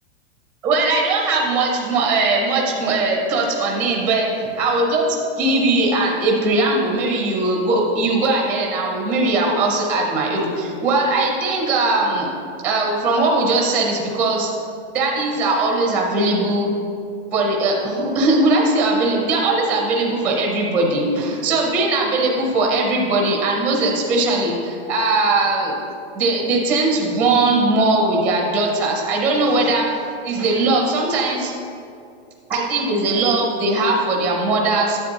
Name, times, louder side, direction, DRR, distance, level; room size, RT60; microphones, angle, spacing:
voice 1, 0.6-4.3 4.6-5.1 5.4-12.3 12.6-14.5 14.9-16.7 17.3-25.7 26.1-29.9 30.2-31.5 32.5-35.0, right 2 dB, 5° right, -1 dB, 0.5 m, -19 dB
9.7 x 7.4 x 2.7 m, 2.5 s
supercardioid pair, 170°, 33 cm